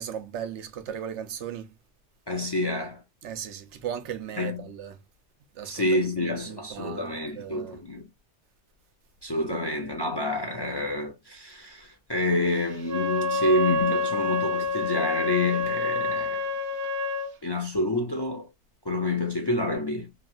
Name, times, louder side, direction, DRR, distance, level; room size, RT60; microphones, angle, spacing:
voice 1, 0.0-1.7 3.2-5.0 5.5-5.9 6.2-7.8, right 9 dB, 85° right, 1.0 m, -37 dB
voice 2, 2.3-3.0 4.4-4.7 5.6-8.1 9.2-16.5 17.4-18.5 18.9-20.1, left 2 dB, 35° left, 0.4 m, -28 dB
Wind instrument woodwind instrument, 12.8-17.3, left 2 dB, 60° right, 0.8 m, -27 dB
3.1 x 2.4 x 2.5 m
omnidirectional pair, 1.1 m